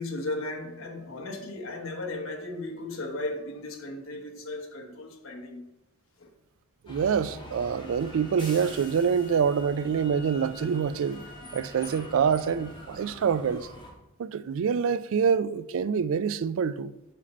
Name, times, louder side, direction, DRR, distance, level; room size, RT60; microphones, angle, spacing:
voice 1, 0.0-5.7 6.2-6.3, left 2 dB, 70° left, 1.1 m, -36 dB
voice 2, 6.8-11.2 11.5-13.7 14.2-16.9, right 6 dB, 65° right, 0.3 m, -26 dB
sound 1, 6.9-13.9, left 1 dB, 25° left, 1.4 m, -44 dB
7.5 x 5.4 x 4.2 m
head